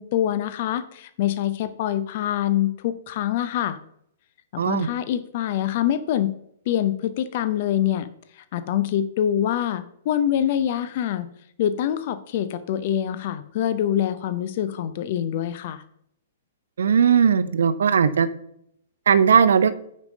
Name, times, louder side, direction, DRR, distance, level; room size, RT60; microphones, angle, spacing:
voice 1, 0.0-3.8 4.5-6.3 6.7-8.1 8.4-11.3 11.6-15.8, left 11 dB, 45° left, 13 dB, 0.6 m, -25 dB
voice 2, 4.6-4.9 16.8-18.3 19.1-19.7, right 7 dB, 60° right, 14 dB, 0.7 m, -18 dB
9.1 x 5.3 x 5.3 m, 0.74 s
figure-of-eight pair, 110°, 0 cm